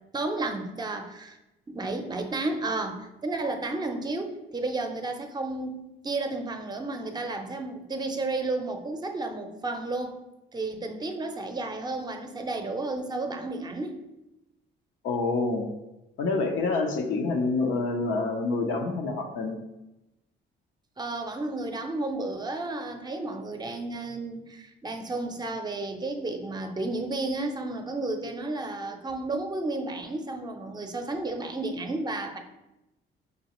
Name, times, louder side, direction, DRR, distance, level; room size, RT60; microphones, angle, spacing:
voice 1, 0.1-1.4 1.7-10.2 10.5-14.0 21.0-32.4, right 2 dB, 20° right, 5 dB, 0.6 m, -32 dB
voice 2, 15.0-15.7 16.2-19.6, left 3 dB, 85° left, 1 dB, 0.7 m, -27 dB
5.3 x 3.1 x 3.0 m, 0.94 s
cardioid pair, 90°, 20 cm